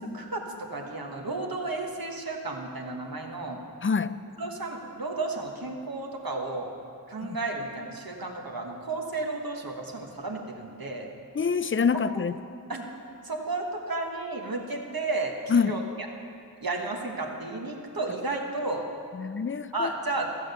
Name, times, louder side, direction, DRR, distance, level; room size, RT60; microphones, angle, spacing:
voice 1, 0.1-3.6 4.4-6.7 7.1-11.1 12.1-12.2 12.7-12.8 13.2-15.8 16.6-18.9 19.7-20.3, right 2 dB, 80° right, 1 dB, 1.4 m, -33 dB
voice 2, 3.8-4.1 7.2-7.4 11.3-12.4 15.5-15.8 19.1-19.9, left 5 dB, 35° left, 12 dB, 0.4 m, -26 dB
14.0 x 7.3 x 6.8 m, 2.4 s
wide cardioid pair, 40°, 36 cm